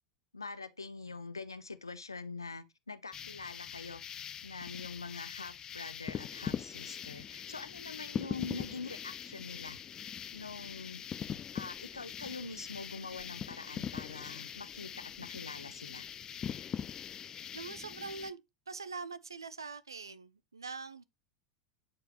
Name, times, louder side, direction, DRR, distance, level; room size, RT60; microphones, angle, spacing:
voice 1, 0.3-4.0 4.4-9.8 10.3-11.0 11.5-16.1, left 4 dB, 90° left, 0.6 m, -44 dB
sound 1, 3.1-18.3, left 8 dB, 30° left, 0.5 m, -42 dB
voice 2, 17.5-21.0, right 4 dB, 85° right, 0.6 m, -43 dB
8.4 x 4.8 x 3.0 m
figure-of-eight pair, 85°, 2 cm